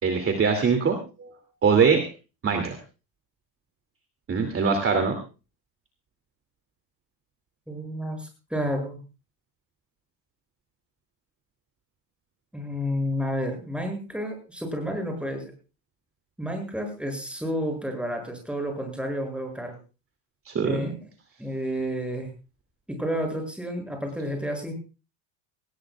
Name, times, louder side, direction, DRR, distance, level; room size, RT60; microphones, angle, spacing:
voice 1, 0.0-1.4 1.6-2.0 2.4-2.8 4.3-5.2 20.5-20.9, right 5 dB, 25° right, 4 dB, 2.6 m, -22 dB
voice 2, 7.7-9.0 12.5-15.5 16.4-19.8 20.6-21.0 21.4-22.3 22.9-24.7, equal, ahead, 3 dB, 7.0 m, -30 dB
19.0 x 19.0 x 2.4 m, 0.33 s
cardioid pair, 130°, 48 cm